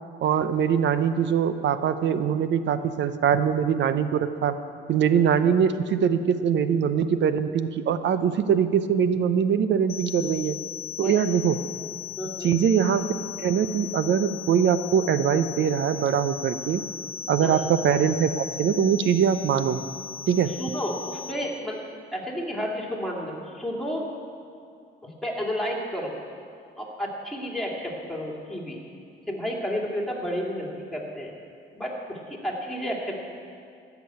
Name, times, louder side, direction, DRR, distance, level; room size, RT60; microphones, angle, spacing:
voice 1, 0.2-4.5 4.9-10.6 11.0-11.6 12.4-13.1 13.4-16.8 17.3-19.8 20.3-20.5, right 8 dB, 65° right, 12 dB, 0.7 m, -22 dB
sound 1, 9.9-21.3, left 9 dB, 55° left, 0.8 m, -37 dB
voice 2, 12.2-12.5 17.4-17.6 20.4-21.8 22.1-24.1 25.0-26.1 26.8-28.8 29.3-31.3 31.7-33.2, equal, ahead, -2 dB, 2.5 m, -31 dB
12.5 x 6.1 x 8.7 m, 2.4 s
cardioid pair, 90°, 20 cm